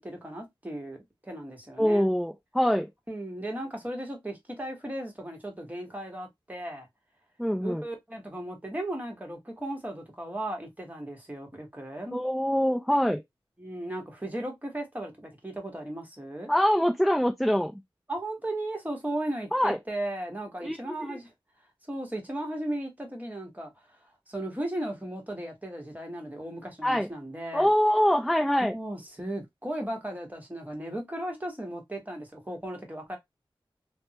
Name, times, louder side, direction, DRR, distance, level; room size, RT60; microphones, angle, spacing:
voice 1, 0.0-2.1 3.1-6.9 7.6-12.2 13.6-16.5 18.1-21.3 21.9-23.7 24.3-27.7 28.6-33.2, right 1 dB, 15° right, 1.1 m, -36 dB
voice 2, 1.8-2.9 7.4-7.8 12.1-13.2 16.5-17.7 19.5-19.8 20.6-20.8 21.1-21.2 26.8-27.1 27.5-28.7, equal, ahead, 0.4 m, -24 dB
3.4 x 2.1 x 2.7 m
wide cardioid pair, 75°, 9 cm